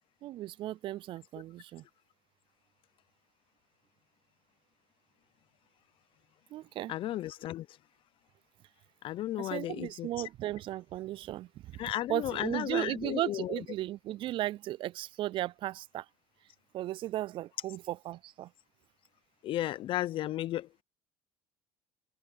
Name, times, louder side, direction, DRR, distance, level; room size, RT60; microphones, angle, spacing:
voice 1, 0.2-1.8 6.5-6.9 9.4-11.8 12.1-16.1 16.7-18.5, right 14 dB, 45° right, 0.3 m, -36 dB
voice 2, 6.9-7.7 9.0-10.3 11.8-13.6 19.4-20.7, left 13 dB, 50° left, 0.7 m, -34 dB
cardioid pair, 120°, 12 cm